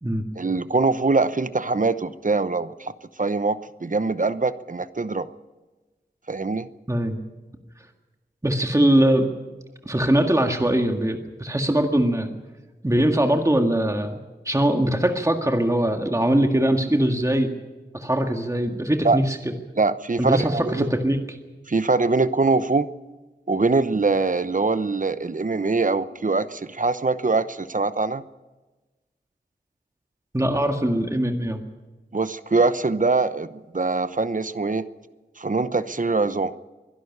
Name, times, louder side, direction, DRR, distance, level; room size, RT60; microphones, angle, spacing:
voice 1, 0.4-2.9 3.2-5.3 6.3-6.7 19.0-19.2 19.8-20.9 21.7-22.9 23.5-28.2 32.1-34.8 35.4-36.5, right 3 dB, 50° right, 13 dB, 0.9 m, -23 dB
voice 2, 6.9-7.2 8.4-9.3 9.9-12.3 12.8-14.2 14.5-17.5 17.9-19.4 20.2-21.2 30.3-31.6, right 1 dB, 20° right, 4 dB, 1.9 m, -21 dB
23.0 x 11.5 x 9.8 m, 1.2 s
wide cardioid pair, 60°, 17 cm